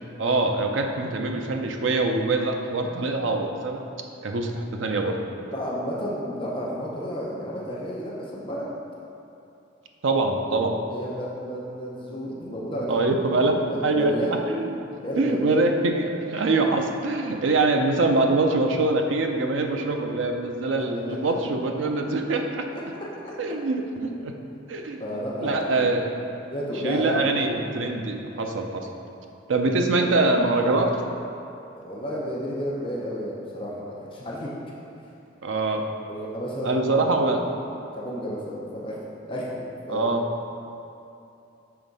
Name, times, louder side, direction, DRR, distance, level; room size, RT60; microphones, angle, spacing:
voice 1, 0.2-3.8 4.2-5.2 10.0-10.8 12.9-13.5 13.8-14.1 14.5-14.8 15.2-22.6 23.4-24.3 24.7-26.1 26.8-28.9 29.5-31.0 35.4-35.8 36.6-37.4 39.9-40.2, right 2 dB, 85° right, 3 dB, 0.5 m, -24 dB
voice 2, 5.5-8.7 10.8-12.9 13.2-14.4 15.0-15.6 20.9-21.2 22.7-22.8 25.0-25.9 26.5-27.5 31.7-34.5 36.1-37.3 37.9-39.0 39.3-40.1, equal, 30° left, -5 dB, 0.7 m, -32 dB
5.8 x 3.5 x 5.2 m, 2.7 s
head